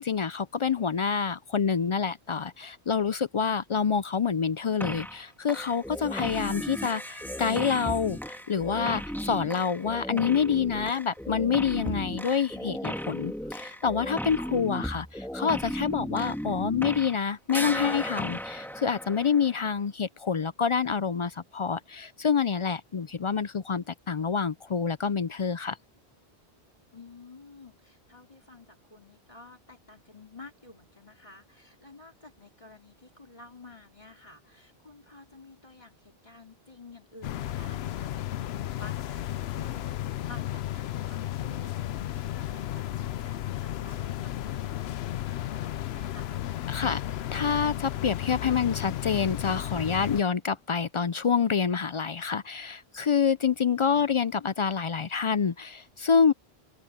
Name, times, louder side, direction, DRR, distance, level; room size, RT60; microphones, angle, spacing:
voice 1, 0.0-25.8 46.7-47.0 47.3-56.3, left 6 dB, 55° left, 0.3 m, -27 dB
sound 1, 4.8-5.2 5.5-17.2 17.5-19.7, equal, ahead, 1.7 m, -35 dB
voice 2, 26.9-39.9 40.2-46.4, left 3 dB, 30° left, 3.2 m, -51 dB
sound 2, 37.2-50.2, left 13 dB, 75° left, 0.8 m, -33 dB
omnidirectional pair, 1.1 m